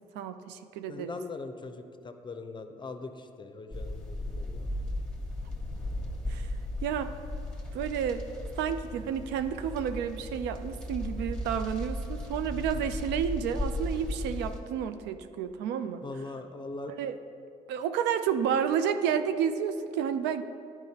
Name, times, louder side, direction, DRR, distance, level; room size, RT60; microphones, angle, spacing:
voice 1, 0.1-1.2 6.3-6.5 6.8-7.1 7.7-8.2 8.6-16.0 17.0-17.2 17.7-20.4, right 8 dB, 80° right, 10 dB, 0.4 m, -30 dB
voice 2, 0.9-4.8 16.0-16.9, left 3 dB, 25° left, 7 dB, 0.6 m, -41 dB
sound 1, 3.7-14.6, left 1 dB, 5° left, 1.2 m, -36 dB
10.5 x 4.7 x 2.8 m, 2.6 s
supercardioid pair, 60°, 18 cm